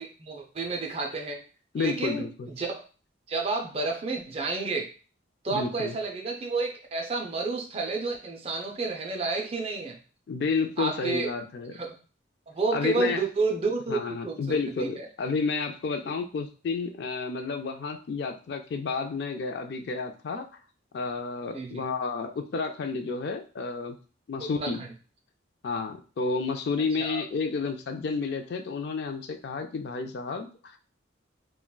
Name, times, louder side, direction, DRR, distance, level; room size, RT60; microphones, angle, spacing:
voice 1, 0.0-1.4 1.8-2.7 3.3-4.9 5.4-10.0 10.8-11.3 11.7-11.9 12.5-15.1 21.5-21.8 24.4-24.9 27.0-27.2, right 3 dB, 30° right, 2 dB, 0.4 m, -30 dB
voice 2, 1.7-2.5 5.5-6.0 10.3-11.7 12.7-13.2 13.9-20.5 20.9-24.0 24.3-24.8 25.6-30.8, left 4 dB, 60° left, 6 dB, 0.3 m, -31 dB
3.7 x 2.1 x 2.2 m, 0.37 s
head